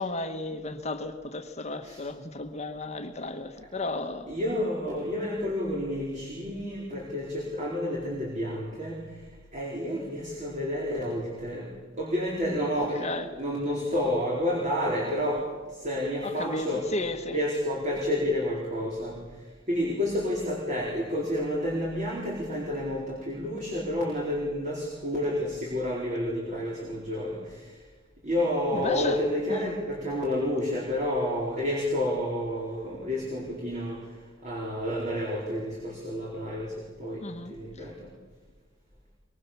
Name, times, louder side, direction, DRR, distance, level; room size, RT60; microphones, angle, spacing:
voice 1, 0.0-4.3 13.0-13.3 16.2-17.4 28.7-29.2 29.5-29.7 37.2-37.5, left 2 dB, 35° left, 1.4 m, -33 dB
voice 2, 4.3-9.0 9.5-11.7 12.0-13.1 13.4-15.4 15.8-16.9 17.3-19.2 19.7-27.7 28.2-34.0 34.4-36.7 37.0-38.1, left 1 dB, 40° right, 4.6 m, -30 dB
23.5 x 23.5 x 7.1 m
head